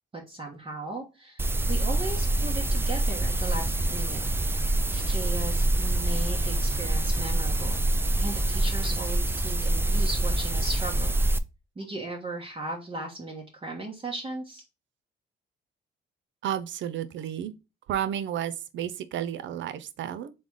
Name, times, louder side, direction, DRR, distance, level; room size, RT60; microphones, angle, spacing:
voice 1, 0.1-1.4 1.7-4.2 4.9-7.8 8.2-11.1 11.7-14.6, right 2 dB, 30° right, 1.1 m, -37 dB
sound 1, 1.4-11.4, right 1 dB, 10° right, 0.4 m, -26 dB
voice 2, 16.4-17.5 17.9-20.3, right 10 dB, 70° right, 0.6 m, -32 dB
3.8 x 3.3 x 3.5 m
cardioid pair, 90°, 20 cm